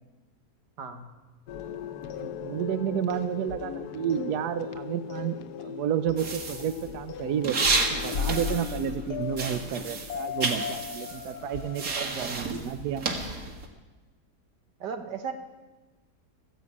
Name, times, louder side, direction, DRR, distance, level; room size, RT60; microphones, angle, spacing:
sound 1, 1.5-12.1, left 9 dB, 75° left, 1.2 m, -37 dB
voice 1, 2.2-11.8 12.2-13.0, right 10 dB, 75° right, 12 dB, 1.1 m, -31 dB
sound 2, 6.2-9.1 9.3-13.7, right 3 dB, 55° right, 2.0 m, -31 dB
voice 2, 11.9-12.5 14.8-15.3, right 6 dB, 90° right, 6 dB, 2.0 m, -36 dB
14.5 x 10.0 x 8.4 m, 1.2 s
omnidirectional pair, 1.8 m